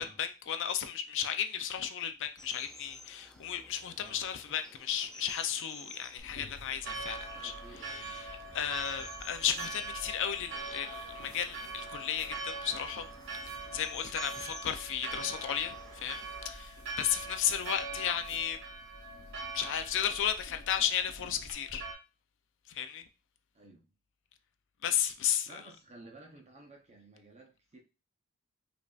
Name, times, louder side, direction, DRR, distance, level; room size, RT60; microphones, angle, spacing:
voice 1, 0.0-7.2 7.4-7.5 7.8-13.1 13.7-16.2 16.4-18.6 19.5-21.8 22.7-23.0 24.8-25.5, left 9 dB, 60° left, 0.5 m, -34 dB
sound 1, 2.4-16.3, left 1 dB, 5° left, 0.4 m, -53 dB
sound 2, 6.2-21.5, left 1 dB, 80° left, 1.1 m, -54 dB
voice 2, 6.8-8.2 14.2-14.4 17.1-17.3 23.5-23.8 25.4-27.8, right 2 dB, 30° right, 0.7 m, -54 dB
Church bell, 6.8-21.9, right 3 dB, 60° right, 1.2 m, -43 dB
5.1 x 2.6 x 2.4 m
head